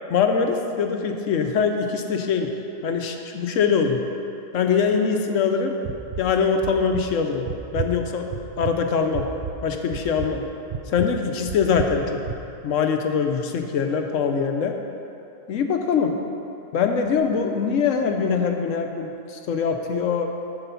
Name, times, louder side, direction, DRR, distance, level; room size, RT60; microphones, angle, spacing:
voice 1, 0.1-2.5 2.8-4.0 4.5-5.8 6.2-7.5 7.7-8.3 8.6-9.3 9.6-10.4 10.9-12.2 12.6-14.8 15.5-16.1 16.7-20.3, left 6 dB, 75° left, 4 dB, 1.0 m, -23 dB
sound 1, 5.8-6.3 6.6-7.0 7.5-7.9 8.3-8.7 9.1-9.6 9.9-10.4 10.7-11.1 11.5-11.9 12.3-12.4, right 7 dB, 70° right, 0.4 m, -31 dB
7.9 x 6.6 x 5.6 m, 2.7 s
omnidirectional pair, 1.4 m